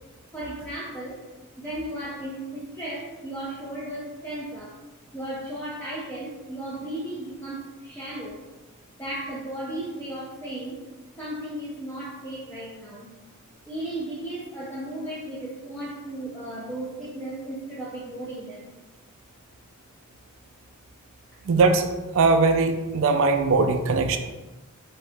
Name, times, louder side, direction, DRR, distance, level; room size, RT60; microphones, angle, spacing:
voice 1, 0.3-1.2 1.6-4.8 5.1-8.4 9.0-10.8 11.2-13.1 13.6-18.7, right 1 dB, 5° left, -7 dB, 0.5 m, -35 dB
voice 2, 21.5-21.9 22.1-24.2, right 3 dB, 60° right, 6 dB, 0.4 m, -20 dB
3.9 x 2.8 x 3.4 m, 1.2 s
head